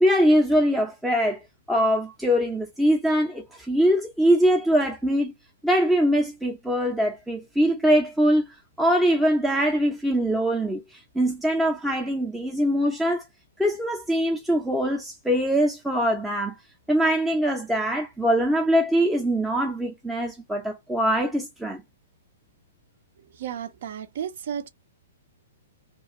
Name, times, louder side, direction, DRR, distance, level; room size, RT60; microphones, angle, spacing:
voice 1, 0.0-1.4 1.7-5.3 5.6-8.5 8.8-13.2 13.6-16.6 16.9-21.8, equal, 5° right, 0.5 m, -22 dB
voice 2, 23.4-24.7, right 9 dB, 55° right, 0.6 m, -33 dB
2.4 x 2.3 x 2.9 m
figure-of-eight pair, 115°, 0 cm